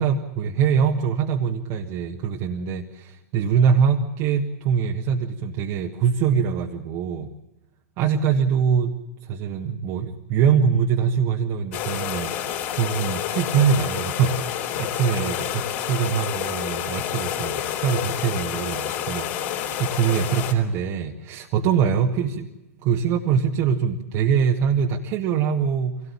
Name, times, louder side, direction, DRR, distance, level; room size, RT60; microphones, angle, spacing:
voice 1, 0.0-7.3 8.0-22.5 22.8-26.0, right 7 dB, 40° right, 1 dB, 1.5 m, -23 dB
sound 1, 11.7-20.5, left 10 dB, 50° left, 3.9 m, -29 dB
24.0 x 18.0 x 8.6 m, 0.95 s
hypercardioid pair, 115°, 8 cm